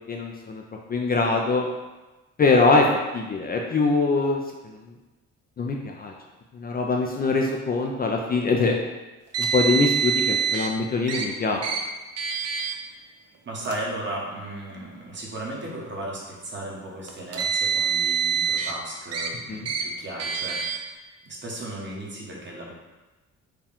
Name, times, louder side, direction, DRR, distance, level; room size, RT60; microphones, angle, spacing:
voice 1, 0.1-0.6 0.9-1.7 2.4-2.9 3.1-4.8 5.6-6.1 6.5-8.8 9.4-11.6 19.5-19.7, left 3 dB, 30° left, 1 dB, 0.4 m, -23 dB
Car, 9.3-10.7 11.1-11.3 11.6-11.8 12.2-12.7 13.6-13.8 14.7-14.8 17.1-18.7 19.1-19.3 19.7-19.8 20.2-20.8, right 7 dB, 55° right, 0.6 m, -25 dB
voice 2, 13.5-20.9 21.2-22.7, right 1 dB, 40° right, -3 dB, 1.2 m, -35 dB
4.6 x 2.3 x 3.5 m, 1.1 s
cardioid pair, 90°, 30 cm